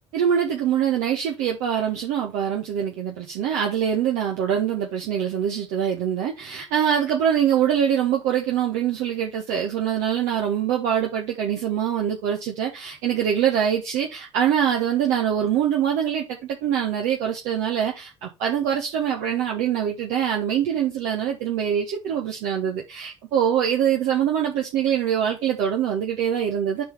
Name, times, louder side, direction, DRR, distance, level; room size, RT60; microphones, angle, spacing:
voice 1, 0.1-26.8, right 9 dB, 60° right, 1.4 m, -24 dB
7.7 x 5.0 x 3.6 m
figure-of-eight pair, 60°, 15 cm